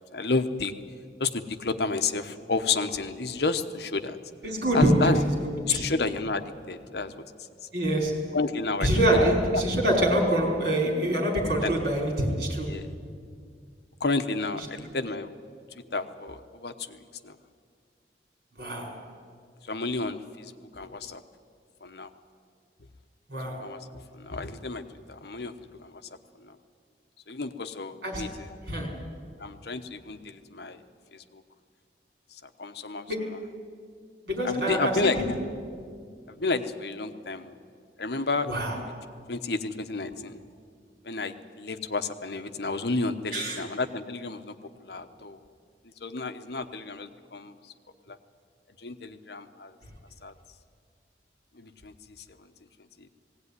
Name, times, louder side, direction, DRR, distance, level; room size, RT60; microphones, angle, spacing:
voice 1, 0.1-0.7 1.2-4.2 4.7-5.2 5.6-7.5 8.3-9.6 11.6-11.7 12.7-12.9 14.0-15.3 15.9-17.4 19.6-21.2 21.8-22.1 23.6-24.8 25.1-26.0 26.4-26.6 27.3-28.6 29.4-30.8 31.1-31.4 32.3-33.4 34.4-35.4 36.3-37.6 38.0-38.5 38.7-38.9 39.3-40.4 41.0-45.4 46.0-47.5 48.1-48.2 48.8-49.7 50.2-50.3 51.5-52.2 53.0-53.1, left 3 dB, 65° left, 8 dB, 1.0 m, -31 dB
voice 2, 4.4-5.1 5.4-5.8 7.7-8.2 8.8-12.7 18.6-18.9 23.3-23.6 28.0-28.3 28.7-28.9 33.1-33.3 34.2-35.1 38.5-38.7 43.3-43.6, right 1 dB, 70° right, 0 dB, 4.8 m, -25 dB
19.0 x 17.0 x 9.7 m, 2.1 s
head